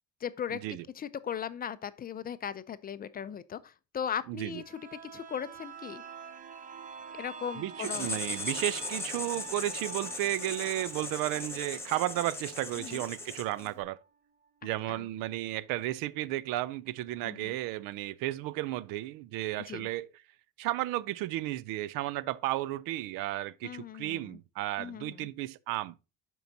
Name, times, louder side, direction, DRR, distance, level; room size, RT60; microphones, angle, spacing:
voice 1, 0.2-0.6 0.9-6.0 7.1-8.2 12.8-13.0 14.9-15.0 17.2-17.6 19.7-19.9 23.6-24.4 24.8-25.3, left 8 dB, 30° left, 0.3 m, -38 dB
voice 2, 4.3-4.6 7.5-14.0 14.6-20.1 20.6-25.9, right 15 dB, 90° right, 0.5 m, -33 dB
sound 1, 4.5-14.1 14.5-14.6, right 5 dB, 25° right, 0.6 m, -47 dB
Writing, 7.8-13.8, left 3 dB, 10° left, 1.3 m, -38 dB
12.0 x 4.6 x 2.6 m
cardioid pair, 130°, 33 cm